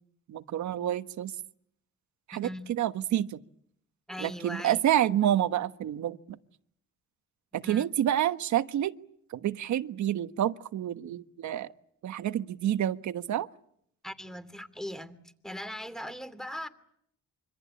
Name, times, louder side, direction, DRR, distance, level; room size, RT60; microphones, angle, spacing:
voice 1, 0.3-1.3 2.3-3.4 4.2-6.4 7.5-8.9 9.3-11.7 12.0-13.5, right 11 dB, 70° right, 1.3 m, -28 dB
voice 2, 2.3-2.7 4.1-4.9 7.5-7.9 14.0-15.2 15.4-16.7, equal, ahead, 2.8 m, -39 dB
26.5 x 25.0 x 8.7 m
cardioid pair, 90°, 30 cm